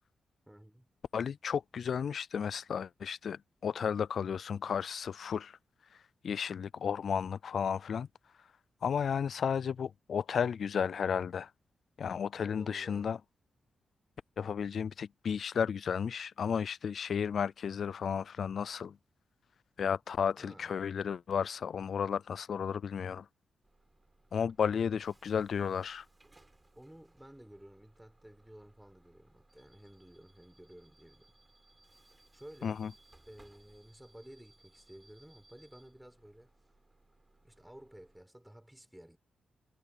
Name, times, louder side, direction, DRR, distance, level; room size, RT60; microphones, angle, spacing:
voice 1, 0.5-0.9 12.4-13.2 20.4-20.8 24.7-24.9 26.8-31.3 32.3-32.8 33.3-36.5 37.4-39.2, right 1 dB, 5° right, 5.8 m, -54 dB
voice 2, 1.1-5.6 6.2-8.1 8.8-11.5 12.0-13.2 14.4-18.9 19.8-23.3 24.3-26.0 32.6-32.9, left 7 dB, 70° left, 0.3 m, -33 dB
Bus / Alarm, 23.6-38.2, right 2 dB, 25° right, 7.6 m, -65 dB
cardioid pair, 60°, 0 cm